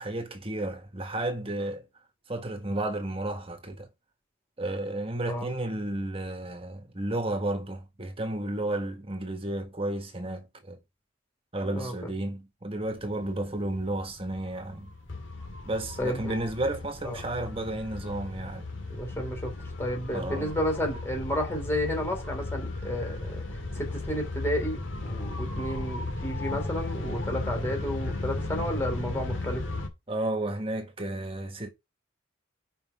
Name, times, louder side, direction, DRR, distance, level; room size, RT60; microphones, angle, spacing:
voice 1, 0.0-1.8 2.3-3.9 4.6-10.8 11.5-14.9 15.6-18.7 20.1-20.5 30.1-31.7, right 1 dB, 30° right, 1.5 m, -32 dB
voice 2, 11.6-12.1 16.0-16.3 17.0-17.2 18.9-19.5 19.8-29.6, equal, 10° left, 2.9 m, -32 dB
sound 1, 12.8-29.9, left 2 dB, 70° left, 2.1 m, -36 dB
5.6 x 5.2 x 5.6 m
head